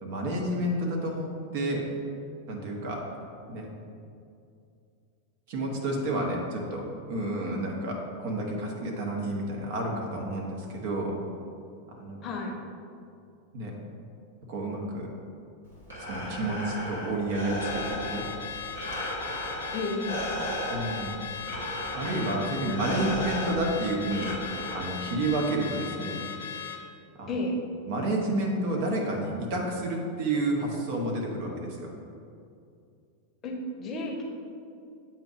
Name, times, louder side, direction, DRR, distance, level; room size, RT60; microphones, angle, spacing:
voice 1, 0.0-1.8 2.5-3.0 3.5-3.7 5.5-11.1 11.9-12.3 13.5-13.7 14.5-15.1 16.0-18.2 20.7-21.1 21.9-24.3 24.7-26.2 27.2-27.3 27.9-31.9, right 1 dB, 50° right, -1 dB, 1.1 m, -30 dB
voice 2, 12.2-12.5 19.7-20.2 22.7-23.1 27.3-27.6 33.4-34.2, left 2 dB, 30° left, 0 dB, 0.9 m, -32 dB
Breathing, 15.6-25.3, equal, 80° right, 1.3 m, -35 dB
Car / Alarm, 17.6-26.9, left 7 dB, 65° left, 0.5 m, -38 dB
7.7 x 2.9 x 4.9 m, 2.5 s
figure-of-eight pair, 90°, 0 cm